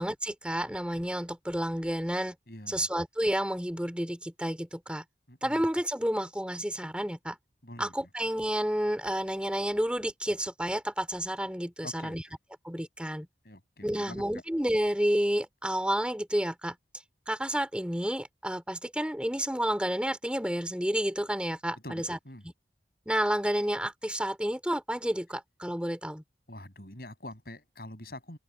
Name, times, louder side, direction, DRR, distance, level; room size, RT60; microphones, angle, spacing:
voice 1, 0.0-2.3 2.7-5.0 5.4-7.4 7.8-12.2 12.6-13.3 13.8-16.8 17.3-22.2 23.1-26.2, equal, 5° right, 3.1 m, -30 dB
voice 2, 2.5-2.9 5.3-5.7 7.6-8.1 11.8-12.4 13.4-14.4 21.8-22.4 26.5-28.4, left 1 dB, 55° left, 7.9 m, -45 dB
open air
head